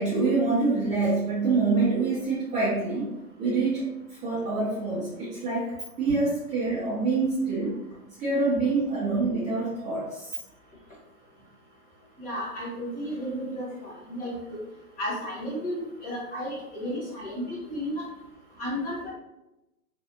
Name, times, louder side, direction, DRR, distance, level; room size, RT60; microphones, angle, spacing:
voice 1, 0.0-3.1 3.4-3.9 4.2-5.7 6.0-7.8 8.2-10.3, right 3 dB, 15° right, -11 dB, 0.7 m, -26 dB
voice 2, 12.2-14.6 15.0-18.0 18.6-19.1, equal, 15° left, -6 dB, 1.3 m, -33 dB
3.3 x 2.5 x 2.7 m, 0.94 s
hypercardioid pair, 125°, 45 cm